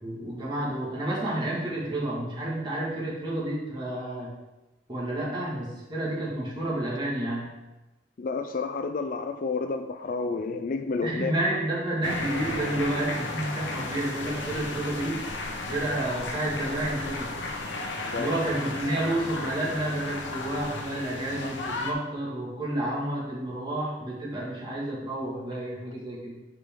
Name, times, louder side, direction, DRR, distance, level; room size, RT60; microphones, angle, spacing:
voice 1, 0.0-4.3 4.9-7.5 11.0-15.4 15.7-17.3 18.2-26.4, right 1 dB, 25° right, -6 dB, 2.0 m, -30 dB
voice 2, 8.2-11.3 18.0-18.6 21.4-21.5, left 4 dB, 50° left, 8 dB, 0.4 m, -30 dB
sound 1, 12.0-21.9, left 2 dB, 80° left, 0.9 m, -34 dB
7.2 x 5.0 x 3.7 m, 1.0 s
head